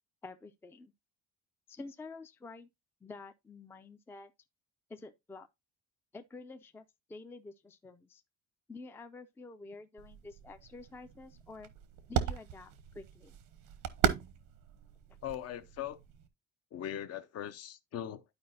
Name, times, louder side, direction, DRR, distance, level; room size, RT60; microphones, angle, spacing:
voice 1, 0.2-0.9 1.7-2.7 3.0-4.3 4.9-5.5 6.1-8.2 8.7-11.7 12.1-13.4 15.1-15.2, left 3 dB, 10° left, 0.4 m, -49 dB
sound 1, 10.0-16.3, right 9 dB, 85° right, 1.0 m, -37 dB
voice 2, 15.2-16.0 16.7-18.2, left 11 dB, 50° left, 0.7 m, -40 dB
11.5 x 4.7 x 2.6 m
cardioid pair, 155°, 31 cm